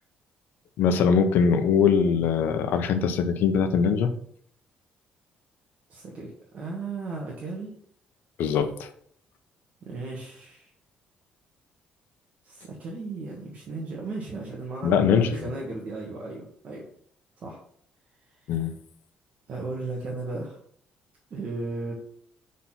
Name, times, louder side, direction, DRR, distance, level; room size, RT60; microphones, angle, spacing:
voice 1, 0.8-4.1 8.4-8.9 14.8-15.4 18.5-18.8, left 6 dB, 75° left, 8 dB, 0.8 m, -22 dB
voice 2, 5.9-7.7 9.8-10.7 12.4-16.8 17.4-17.6 19.5-20.6 21.3-21.9, right 3 dB, 45° right, -3 dB, 1.6 m, -35 dB
6.1 x 4.2 x 5.9 m, 0.62 s
cardioid pair, 130°, 3 cm